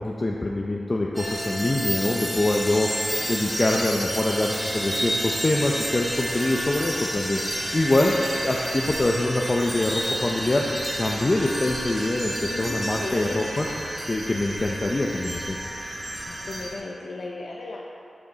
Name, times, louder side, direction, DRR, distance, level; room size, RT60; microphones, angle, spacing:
voice 1, 0.0-2.9 3.3-13.7 14.1-15.6, left 2 dB, 35° left, -1 dB, 0.7 m, -24 dB
sound 1, 1.1-16.7, equal, 10° right, 1.7 m, -31 dB
sound 2, 1.9-16.7, right 2 dB, 90° right, 1.6 m, -40 dB
voice 2, 12.5-13.5 16.3-17.8, left 3 dB, 85° left, -2 dB, 0.7 m, -36 dB
11.5 x 5.8 x 4.1 m, 2.8 s
wide cardioid pair, 70°, 0 cm